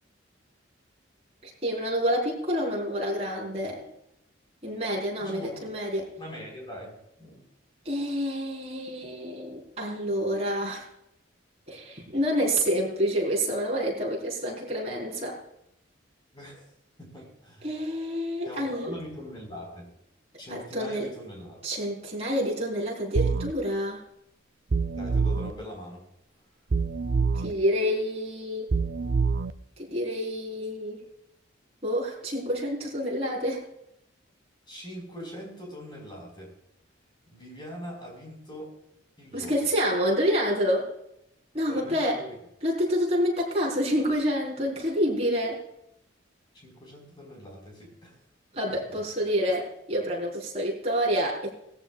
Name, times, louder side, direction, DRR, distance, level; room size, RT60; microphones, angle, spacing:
voice 1, 1.4-3.8 4.6-6.1 7.8-10.8 11.7-15.4 17.6-18.9 20.5-21.1 21.6-24.0 27.3-28.7 29.8-31.0 31.8-33.6 39.3-40.9 41.5-42.2 42.6-45.6 48.5-51.5, equal, 30° right, -2 dB, 4.1 m, -28 dB
voice 2, 5.2-5.7 6.2-7.5 16.3-16.7 17.0-17.8 18.4-19.9 20.4-21.6 24.9-26.0 34.7-36.5 37.3-38.8 39.2-39.7 41.7-42.3 46.5-48.2 48.7-49.0, equal, 25° left, 0 dB, 4.8 m, -42 dB
sound 1, 23.2-23.5 24.7-25.5 26.7-27.5 28.7-29.5, right 4 dB, 55° right, 0.5 m, -25 dB
19.0 x 14.0 x 2.4 m, 0.80 s
head